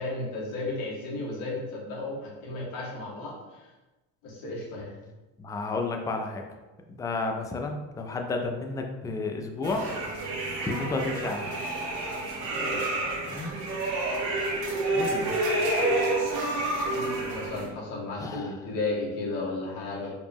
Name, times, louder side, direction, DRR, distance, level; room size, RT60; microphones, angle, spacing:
voice 1, 0.0-3.7 4.2-5.0 12.5-12.8 16.8-20.1, left 2 dB, 85° left, -5 dB, 1.5 m, -34 dB
voice 2, 5.4-6.4 7.0-9.8 10.6-11.4 13.3-13.6 14.9-15.3 18.2-18.6, left 3 dB, 10° left, 3 dB, 0.3 m, -31 dB
sound 1, 9.6-17.7, right 2 dB, 90° right, 1.1 m, -29 dB
5.0 x 2.0 x 3.4 m, 1.1 s
cardioid pair, 110°, 35 cm